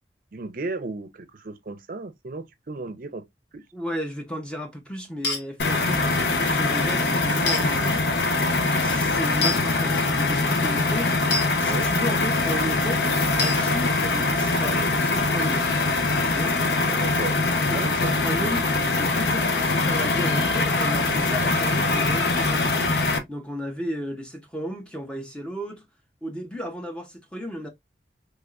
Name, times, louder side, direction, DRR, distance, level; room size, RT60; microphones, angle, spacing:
voice 1, 0.3-3.2 3.5-3.6 11.7-11.9 16.8-17.4 17.7-18.1, right 3 dB, 50° right, 0.5 m, -34 dB
voice 2, 3.7-8.1 8.7-11.1 11.6-15.7 16.2-16.6 17.7-22.8 23.3-25.9 26.2-27.7, equal, 5° left, 0.6 m, -34 dB
sound 1, 5.2-5.4 7.5-7.6 9.4-9.6 11.3-11.5 13.4-13.6, left 3 dB, 90° left, 1.2 m, -25 dB
sound 2, 5.6-23.2, left 3 dB, 65° left, 0.7 m, -23 dB
3.4 x 3.3 x 2.3 m
head